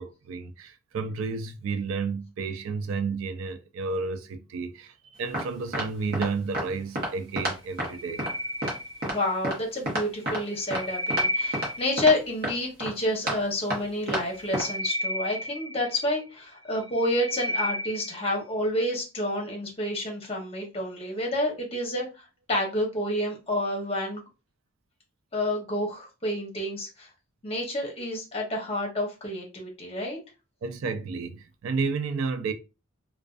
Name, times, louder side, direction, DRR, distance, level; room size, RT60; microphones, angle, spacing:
voice 1, 0.0-8.2 30.6-32.5, right 4 dB, 70° right, 0.3 m, -31 dB
sound 1, 5.3-5.5 5.7-5.9 6.1-6.3 6.5-6.6 7.0-7.1 7.4-7.5 7.8-7.9 8.2-8.3 8.6-8.7 9.0-9.1 9.4-9.6 9.9-10.4 10.7-10.8 11.1-11.2 11.5-11.7 12.0-12.1 12.4-12.5 12.8-12.9 13.3-13.4 13.7-13.8 14.1-14.2 14.5-14.6, right 1 dB, 45° right, 0.9 m, -28 dB
sound 2, 7.7-9.4 10.3-12.2 14.1-16.2 16.7-18.3, left 1 dB, 85° right, 0.9 m, -33 dB
voice 2, 9.0-22.2 22.5-24.2 25.3-27.1 27.4-30.2, left 1 dB, 30° left, 0.8 m, -29 dB
2.4 x 2.2 x 2.3 m
head